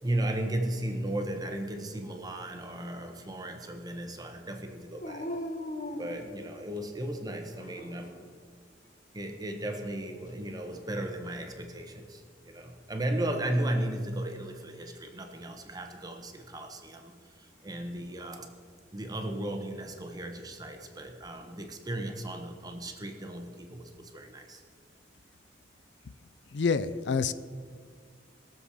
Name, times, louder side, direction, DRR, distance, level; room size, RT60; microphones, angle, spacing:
voice 1, 0.0-5.3 6.0-8.3 9.1-18.5 18.9-24.6, right 1 dB, 20° right, 5 dB, 1.2 m, -35 dB
Dog, 5.0-6.9 7.5-8.3 10.6-11.5, left 1 dB, 40° left, 1.2 m, -40 dB
voice 2, 26.5-27.3, left 5 dB, 70° left, 14 dB, 0.5 m, -27 dB
21.0 x 7.4 x 4.9 m, 2.1 s
head